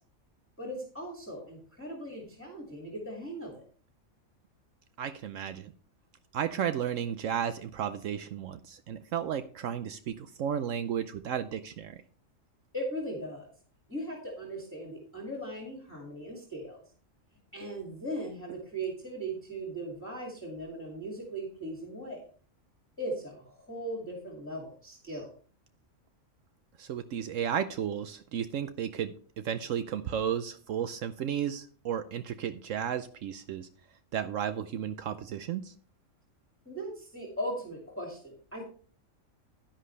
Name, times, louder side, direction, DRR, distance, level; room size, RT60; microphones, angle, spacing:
voice 1, 0.6-3.6 12.7-13.5 13.9-16.8 17.5-22.2 23.0-25.3 36.7-38.6, right 1 dB, 10° left, -1 dB, 2.3 m, -38 dB
voice 2, 5.0-5.7 6.3-12.0 26.8-33.7 34.1-35.7, right 9 dB, 75° right, 11 dB, 1.0 m, -33 dB
10.5 x 10.0 x 3.3 m, 0.42 s
omnidirectional pair, 1.4 m